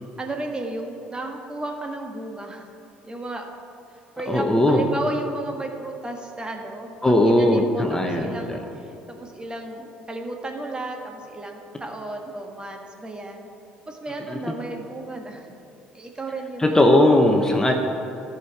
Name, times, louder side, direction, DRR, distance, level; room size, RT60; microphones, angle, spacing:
voice 1, 0.2-2.6 3.0-3.5 4.2-13.5 13.9-15.6 15.9-16.8 17.6-17.7, right 2 dB, 20° right, 3 dB, 1.6 m, -34 dB
voice 2, 4.3-4.8 7.0-8.6 14.3-14.4 16.6-17.7, left 1 dB, 15° left, 2 dB, 1.1 m, -18 dB
14.0 x 6.6 x 4.8 m, 2.7 s
hypercardioid pair, 60°, 4 cm